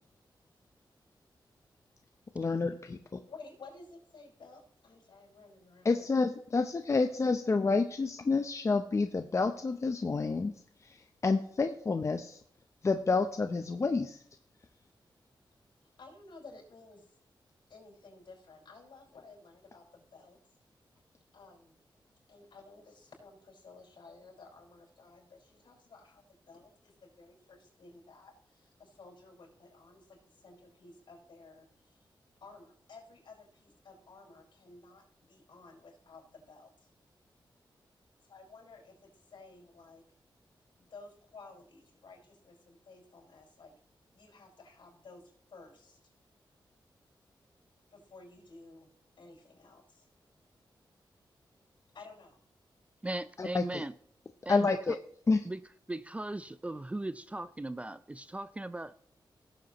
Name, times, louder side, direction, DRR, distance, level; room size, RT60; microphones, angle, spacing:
voice 1, 2.3-3.0 5.8-10.5 10.8-12.4 12.8-14.2 53.4-53.8 54.5-55.0 55.3-55.4, left 4 dB, 35° left, 0.7 m, -29 dB
voice 2, 3.3-5.9 15.8-17.1 17.7-20.4 21.3-21.8 22.3-32.1 32.4-36.9 38.3-40.0 40.8-43.7 44.1-46.0 47.9-48.9 49.2-50.1 51.9-52.4, left 3 dB, 70° left, 5.2 m, -54 dB
voice 3, 53.0-53.9 54.4-55.0 55.4-55.6 55.9-58.9, right 2 dB, 15° right, 0.4 m, -38 dB
17.5 x 7.7 x 3.0 m
wide cardioid pair, 105°, 8 cm